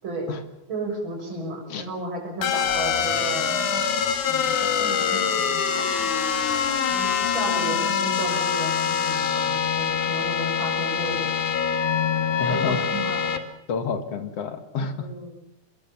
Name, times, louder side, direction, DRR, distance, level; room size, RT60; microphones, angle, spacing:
voice 1, 0.0-0.3 0.7-3.8 4.3-5.8 6.9-11.3 12.5-13.3 14.9-15.4, right 1 dB, 40° right, 1 dB, 6.9 m, -34 dB
sound 1, 2.4-13.4, left 7 dB, 75° left, 3.1 m, -24 dB
voice 2, 12.4-12.9 13.7-15.1, left 5 dB, 55° left, 9 dB, 2.5 m, -29 dB
25.0 x 21.5 x 7.1 m, 0.87 s
omnidirectional pair, 3.5 m